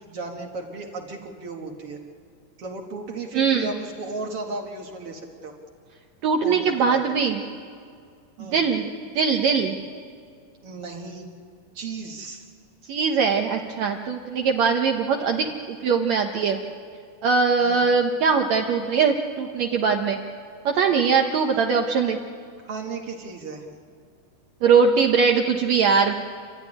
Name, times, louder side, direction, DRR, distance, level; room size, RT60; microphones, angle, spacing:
voice 1, 0.0-2.0 2.6-5.5 6.4-7.0 8.4-8.6 10.6-11.3 11.7-12.4 17.6-17.9 22.6-23.6, right 3 dB, 55° right, 2 dB, 1.8 m, -35 dB
voice 2, 3.3-3.7 6.2-7.4 8.4-8.9 9.1-9.8 12.9-16.6 17.2-20.2 20.6-22.2 24.6-26.1, right 5 dB, 85° right, 2 dB, 1.5 m, -21 dB
29.5 x 13.0 x 9.9 m, 2.3 s
omnidirectional pair, 4.5 m